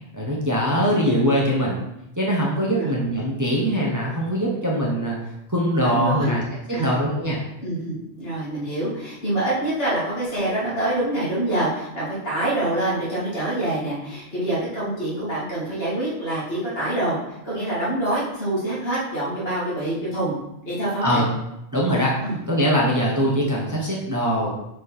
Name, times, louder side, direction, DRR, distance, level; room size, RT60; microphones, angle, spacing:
voice 1, 0.1-1.8 2.2-5.2 5.5-6.4 6.7-7.4 21.0-21.3 21.7-22.1 22.5-24.5, equal, 20° right, -5 dB, 1.0 m, -22 dB
voice 2, 5.8-6.4 6.7-6.9 7.6-20.3 20.6-21.2 22.2-22.4, right 1 dB, 65° left, -8 dB, 2.6 m, -26 dB
5.1 x 4.5 x 4.3 m, 0.87 s
omnidirectional pair, 1.1 m